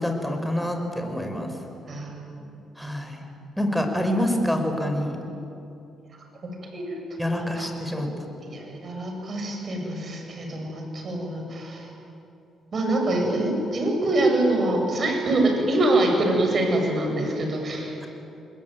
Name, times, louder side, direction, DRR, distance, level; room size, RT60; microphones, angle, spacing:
voice 1, 0.0-1.5 2.8-3.2 3.6-5.2 7.2-8.1, left 1 dB, ahead, 4 dB, 5.0 m, -26 dB
voice 2, 1.9-2.5 6.7-7.0 7.3-7.7 8.4-11.9 12.7-18.1, right 1 dB, 45° right, 2 dB, 7.8 m, -25 dB
27.5 x 21.0 x 9.4 m, 2.8 s
cardioid pair, 90°, 0 cm